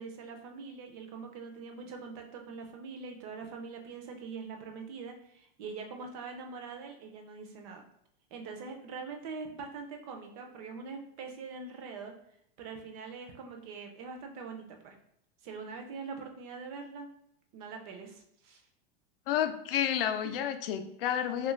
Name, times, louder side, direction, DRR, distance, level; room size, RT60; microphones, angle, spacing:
voice 1, 0.0-7.8 8.3-12.1 12.6-15.0 15.4-17.1 17.5-18.6 20.2-20.4, right 4 dB, 35° right, 3 dB, 0.5 m, -43 dB
voice 2, 19.3-21.5, left 10 dB, 65° left, 8 dB, 0.5 m, -30 dB
3.1 x 2.4 x 3.0 m, 0.72 s
supercardioid pair, 155°, 31 cm